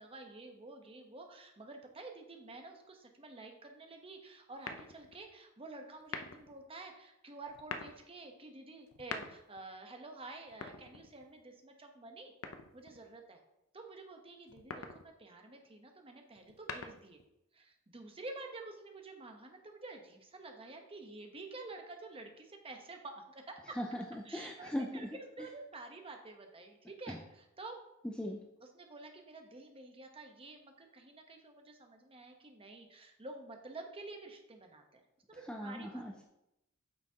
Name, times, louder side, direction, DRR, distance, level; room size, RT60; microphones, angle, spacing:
voice 1, 0.0-12.3 12.7-13.4 13.7-17.2 17.5-23.8 24.2-27.8 28.6-35.0 35.3-36.0, right 2 dB, 25° right, 3 dB, 0.9 m, -50 dB
sound 1, 4.6-5.2 6.0-6.6 7.5-8.0 8.9-9.6 10.5-11.4 12.4-13.0 14.5-15.1 16.4-17.2, left 4 dB, 70° left, 0.6 m, -44 dB
voice 2, 23.8-24.9 27.1-27.2 28.2-28.4 35.5-36.2, equal, 5° left, 1 dB, 0.4 m, -39 dB
8.8 x 5.9 x 2.8 m, 0.86 s
head